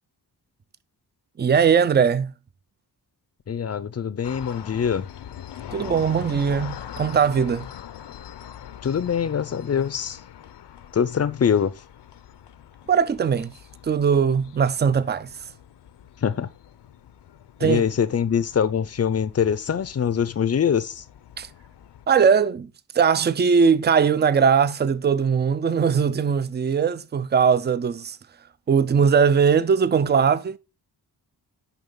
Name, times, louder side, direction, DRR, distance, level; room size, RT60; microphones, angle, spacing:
voice 1, 1.4-2.3 5.7-7.6 12.9-13.5 13.8-15.3 17.6-17.8 21.4-21.5 22.1-22.7 22.9-28.2 28.7-30.6, right 6 dB, 25° right, 0.4 m, -20 dB
voice 2, 3.5-5.0 8.8-10.2 10.9-11.7 16.2-16.5 17.6-21.0, left 7 dB, 40° left, 0.5 m, -23 dB
sound 1, 4.2-22.1, left 10 dB, 85° left, 0.7 m, -43 dB
10.5 x 3.9 x 3.7 m
wide cardioid pair, 125°, 40 cm